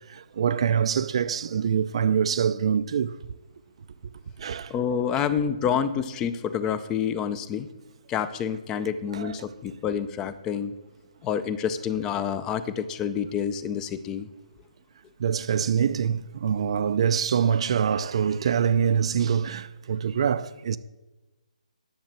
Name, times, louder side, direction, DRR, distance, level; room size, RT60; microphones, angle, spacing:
voice 1, 0.1-3.2 4.4-4.7 5.2-5.3 9.1-9.3 15.2-20.8, right 7 dB, 45° right, 0.4 m, -25 dB
voice 2, 4.7-7.7 8.1-10.7 11.2-14.3, left 8 dB, 15° left, 0.5 m, -28 dB
10.5 x 6.6 x 7.3 m
hypercardioid pair, 160°, 4 cm